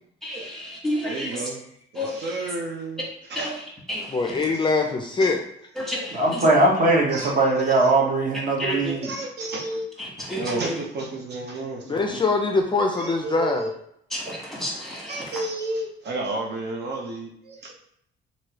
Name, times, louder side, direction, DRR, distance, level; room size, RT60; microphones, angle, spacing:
voice 1, 0.2-1.4 1.9-2.2 3.3-3.6 3.9-4.3 5.8-6.4 8.6-8.9 10.0-10.8 14.1-15.4, left 1 dB, ahead, -3 dB, 1.2 m, -31 dB
voice 2, 1.0-1.6 1.9-3.5 4.4-4.7 5.2-5.3 7.1-8.0 9.0-9.9 10.4-12.1 12.9-13.7 15.1-17.7, right 2 dB, 60° right, 1 dB, 0.6 m, -32 dB
voice 3, 4.1-5.4 11.8-13.7, left 3 dB, 25° left, 2 dB, 0.4 m, -23 dB
voice 4, 6.1-9.1, right 2 dB, 40° right, -2 dB, 1.0 m, -20 dB
3.0 x 2.6 x 2.9 m, 0.71 s
cardioid pair, 90°, 20 cm